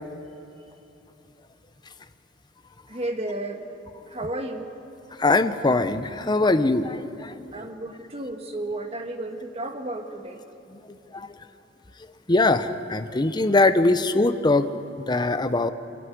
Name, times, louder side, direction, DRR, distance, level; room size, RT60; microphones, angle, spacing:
voice 1, 2.9-3.6 4.1-4.7 7.5-10.4, right 1 dB, 35° right, 4 dB, 1.7 m, -32 dB
voice 2, 5.2-7.3 11.1-11.3 12.3-14.7 15.0-15.7, left 2 dB, 25° left, 10 dB, 0.7 m, -21 dB
25.5 x 14.0 x 9.4 m, 2.9 s
head